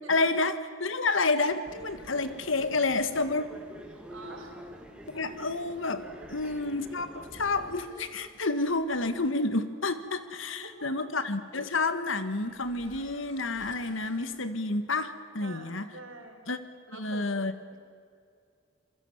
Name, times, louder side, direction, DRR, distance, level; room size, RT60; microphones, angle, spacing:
voice 1, 0.1-3.5 5.1-15.8 16.5-16.6 16.9-17.5, left 3 dB, 70° left, 11 dB, 1.7 m, -29 dB
sound 1, 1.7-7.8, equal, 5° right, 2.9 m, -47 dB
voice 2, 3.9-4.6 10.6-11.1 15.4-16.5 16.9-17.5, right 2 dB, 80° right, 3 dB, 5.3 m, -47 dB
sound 2, 7.1-14.5, left 1 dB, 45° left, 3.9 m, -54 dB
28.0 x 23.0 x 7.3 m, 2.3 s
head